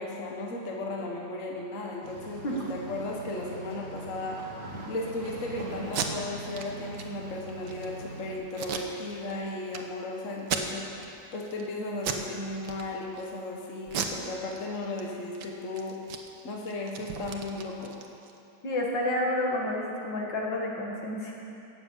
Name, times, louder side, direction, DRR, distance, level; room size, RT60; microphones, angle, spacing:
voice 1, 0.0-4.4 4.9-10.9 11.3-16.0 16.4-18.0, left 2 dB, 45° left, -1 dB, 1.5 m, -35 dB
sound 1, 2.0-8.3, right 2 dB, 55° right, 2.8 m, -42 dB
Packing tape duct tape, 5.8-6.1 6.5-6.7 6.9-7.0 7.5-7.9 8.5-9.3 9.7-9.8 10.4-11.1 11.5-11.7 12.0-12.3 12.6-13.2 13.9-15.0 15.3-15.5 15.7-18.4, right 7 dB, 80° right, 1.7 m, -35 dB
voice 2, 18.6-21.3, left 1 dB, 65° left, -2 dB, 2.4 m, -30 dB
17.5 x 7.2 x 7.2 m, 2.6 s
omnidirectional pair, 2.1 m